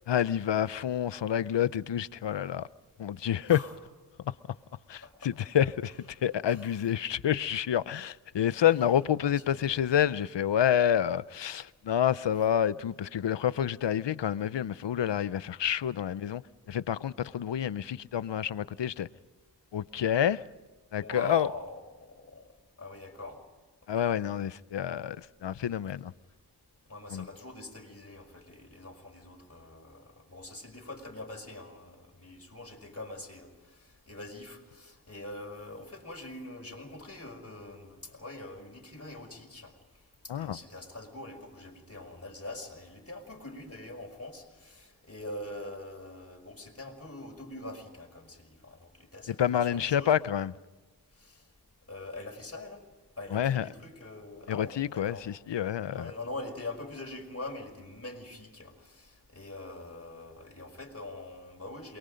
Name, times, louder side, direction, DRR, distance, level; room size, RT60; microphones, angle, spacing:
voice 1, 0.1-2.7 3.0-3.6 4.9-16.4 16.7-19.1 19.7-20.4 20.9-21.5 23.9-26.1 27.1-27.3 40.3-40.6 49.3-50.5 53.3-53.7 54.5-56.1, left 10 dB, 85° left, 0.7 m, -28 dB
voice 2, 9.5-9.9 21.0-22.4 22.8-23.4 24.0-24.1 26.9-33.5 34.1-39.7 40.3-50.1 51.2-51.3 51.9-52.8 53.2-55.3 55.9-62.0, left 2 dB, 35° left, 5.5 m, -43 dB
28.5 x 22.5 x 5.2 m
wide cardioid pair, 60°, 42 cm